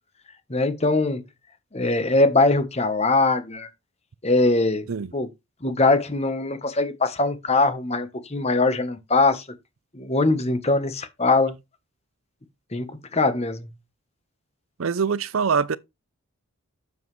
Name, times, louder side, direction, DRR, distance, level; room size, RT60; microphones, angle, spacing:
voice 1, 0.5-1.2 1.7-3.7 4.2-4.9 5.1-5.3 5.6-9.4 9.9-11.5 12.7-13.7, left 2 dB, 30° left, 1.1 m, -22 dB
voice 2, 14.8-15.8, right 6 dB, 70° right, 0.5 m, -23 dB
8.3 x 7.2 x 3.2 m
head